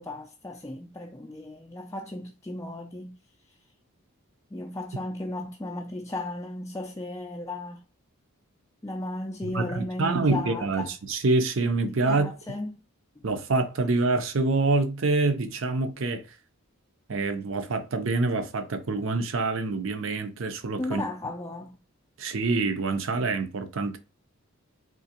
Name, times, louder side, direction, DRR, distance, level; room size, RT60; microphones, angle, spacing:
voice 1, 0.0-3.2 3.4-3.6 4.5-7.8 8.8-10.9 11.9-12.7 13.2-13.3 20.8-21.8, left 2 dB, 15° left, 0.3 m, -35 dB
voice 2, 9.4-12.3 13.2-16.2 17.1-21.0 22.2-24.0, right 3 dB, 60° right, 0.6 m, -26 dB
3.7 x 2.9 x 2.9 m
head